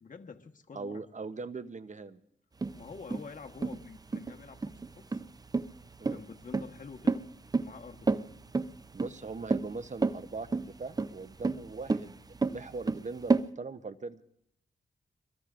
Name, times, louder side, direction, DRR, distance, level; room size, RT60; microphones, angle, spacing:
voice 1, 0.0-1.0 2.7-5.2 6.0-7.2 7.6-8.1, left 5 dB, 45° left, 3 dB, 1.2 m, -47 dB
voice 2, 0.7-2.2 6.0-6.2 8.9-12.2 12.5-14.2, right 4 dB, 40° right, 12 dB, 0.8 m, -41 dB
sound 1, 2.6-13.5, right 3 dB, 20° right, 0.5 m, -31 dB
24.5 x 21.5 x 2.5 m, 0.74 s
cardioid pair, 50°, 18 cm